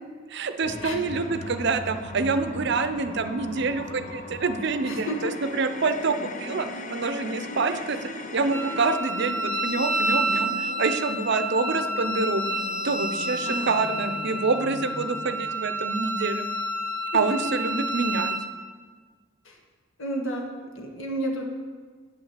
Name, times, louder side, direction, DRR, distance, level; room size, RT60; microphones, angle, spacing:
voice 1, 0.3-8.0 8.3-10.5 10.8-12.4 12.8-16.5 17.1-18.3, right 4 dB, 55° right, 10 dB, 0.6 m, -26 dB
sound 1, 0.6-9.0, left 3 dB, 40° left, 0.6 m, -39 dB
voice 2, 4.8-5.3 10.3-10.4 13.4-13.7 17.1-17.4 19.4-19.6 20.0-21.4, right 1 dB, 70° left, 1 dB, 1.5 m, -31 dB
sound 2, 5.8-15.3, left 1 dB, 85° left, 1.2 m, -41 dB
Wind instrument woodwind instrument, 8.5-18.5, right 1 dB, 10° left, 0.8 m, -29 dB
9.0 x 6.0 x 7.3 m, 1.5 s
head